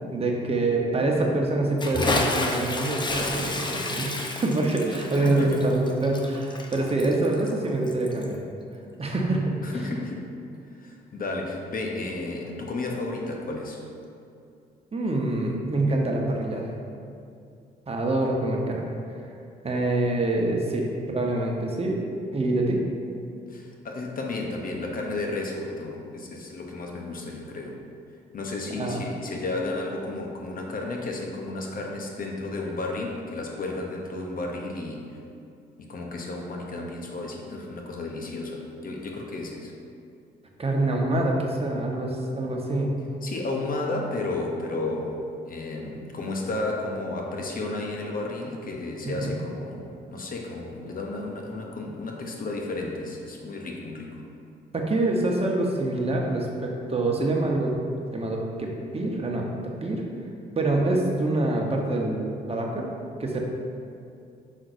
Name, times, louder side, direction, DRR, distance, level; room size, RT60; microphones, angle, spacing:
voice 1, 0.0-4.1 4.4-8.4 9.0-9.6 14.9-16.7 17.9-18.8 19.6-22.0 22.3-22.8 28.8-29.0 40.6-43.0 49.0-49.4 54.7-57.7 58.1-60.0 60.6-62.9 63.2-63.4, right 2 dB, 30° right, 0 dB, 1.0 m, -25 dB
Bathtub (filling or washing) / Splash splatter, 1.8-8.4, left 2 dB, 25° left, 0.7 m, -30 dB
voice 2, 5.1-5.7 9.6-10.3 10.8-13.8 23.5-27.8 28.3-35.1 35.8-39.7 43.2-45.2 45.5-49.8 50.1-54.2, left 2 dB, 50° left, 0 dB, 0.9 m, -32 dB
6.2 x 5.7 x 2.7 m, 2.5 s
supercardioid pair, 60°, 19 cm